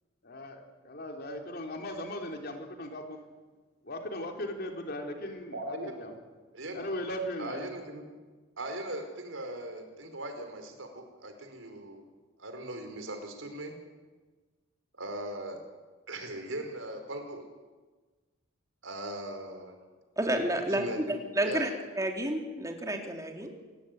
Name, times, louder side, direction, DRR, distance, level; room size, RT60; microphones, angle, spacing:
voice 1, 0.2-3.2 3.8-6.1 6.7-7.7, left 1 dB, 55° left, 3 dB, 3.8 m, -38 dB
voice 2, 5.5-6.0 6.5-6.8 7.4-8.1 8.6-12.0 12.4-13.8 15.0-15.6 16.1-17.4 18.8-19.8 20.7-21.7, right 1 dB, 85° right, 5 dB, 4.9 m, -39 dB
voice 3, 20.2-21.7 22.0-23.5, right 1 dB, 15° right, 3 dB, 3.4 m, -30 dB
28.0 x 17.5 x 9.5 m, 1.3 s
head